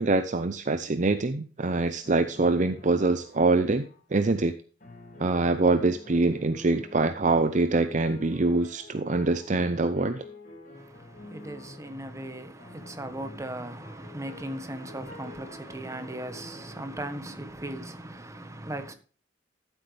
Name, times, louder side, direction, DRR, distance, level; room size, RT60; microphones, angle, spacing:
voice 1, 0.0-4.5 5.2-10.2, right 3 dB, 40° right, 0.6 m, -24 dB
sound 1, 2.0-4.0 4.8-17.0, left 2 dB, 45° left, 4.2 m, -49 dB
voice 2, 10.7-18.9, right 1 dB, 15° right, 1.3 m, -38 dB
13.5 x 7.9 x 3.4 m
head